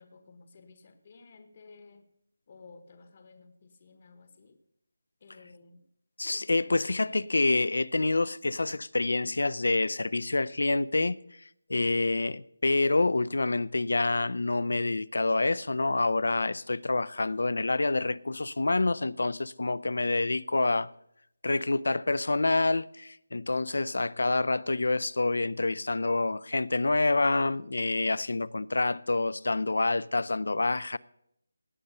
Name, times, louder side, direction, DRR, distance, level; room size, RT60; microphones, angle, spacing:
voice 1, 0.0-2.1 2.5-4.6 5.2-5.9, left 4 dB, 25° left, 1.0 m, -54 dB
voice 2, 6.2-11.2 11.7-20.9 21.4-31.0, left 2 dB, 75° left, 0.6 m, -27 dB
18.0 x 9.1 x 5.5 m
figure-of-eight pair, 180°, 0 cm